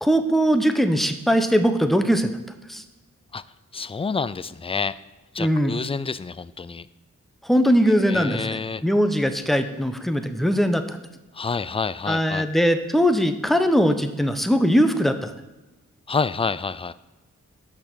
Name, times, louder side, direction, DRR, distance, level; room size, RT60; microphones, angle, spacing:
voice 1, 0.0-2.3 2.7-2.8 5.4-5.7 7.4-11.0 12.1-15.3, equal, ahead, 8 dB, 0.9 m, -20 dB
voice 2, 3.7-4.9 5.3-6.9 8.0-8.8 11.3-12.5 16.1-16.9, left 4 dB, 20° left, 16 dB, 0.4 m, -28 dB
6.6 x 5.9 x 6.2 m, 1.1 s
cardioid pair, 40°, 32 cm